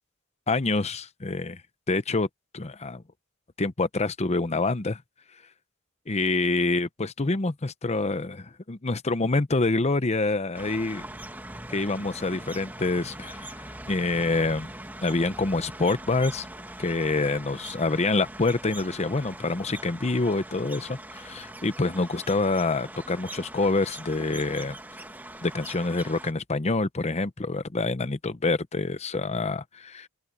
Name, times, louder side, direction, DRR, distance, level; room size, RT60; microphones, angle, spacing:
voice 1, 0.5-1.6 1.9-2.3 2.5-3.0 3.6-5.0 6.1-11.1 11.7-14.7 15.0-16.5 16.8-24.8 25.4-30.1, left 3 dB, 30° left, 0.7 m, -26 dB
sound 1, 10.5-26.3, right 1 dB, 10° right, 2.1 m, -42 dB
open air
head